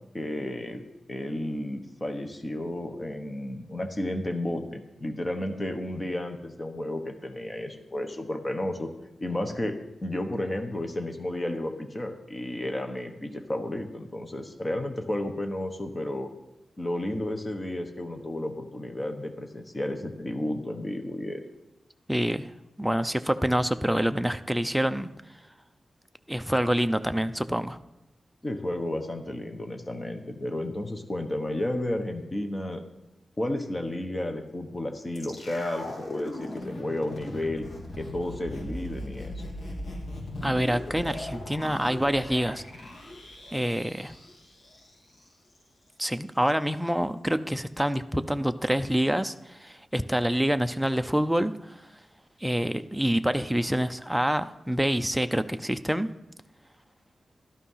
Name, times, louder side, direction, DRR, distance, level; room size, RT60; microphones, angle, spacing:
voice 1, 0.1-0.8 1.1-8.9 9.2-9.8 10.0-16.3 16.8-21.4 28.4-32.8 33.4-37.6 38.0-39.4, left 1 dB, 20° left, 5 dB, 1.3 m, -32 dB
voice 2, 22.1-22.5 22.8-25.1 26.3-27.8 40.4-42.6 43.5-44.1 46.0-51.9 52.4-56.1, equal, 5° right, 9 dB, 0.6 m, -26 dB
sound 1, 35.1-45.3 45.5-45.6, left 1 dB, 60° left, 3.2 m, -39 dB
14.0 x 12.5 x 5.7 m, 0.95 s
wide cardioid pair, 150°, 0 cm